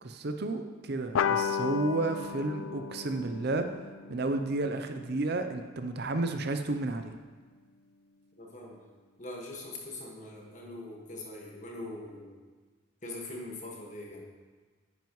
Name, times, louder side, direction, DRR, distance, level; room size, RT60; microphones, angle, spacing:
voice 1, 0.0-3.7 4.1-7.1, right 2 dB, 50° right, 7 dB, 0.6 m, -32 dB
sound 1, 1.1-6.1, left 7 dB, 70° left, 0.4 m, -34 dB
voice 2, 8.4-8.8 9.2-12.3 13.0-14.3, left 2 dB, 35° left, -1 dB, 1.6 m, -42 dB
11.0 x 9.2 x 3.1 m, 1.4 s
head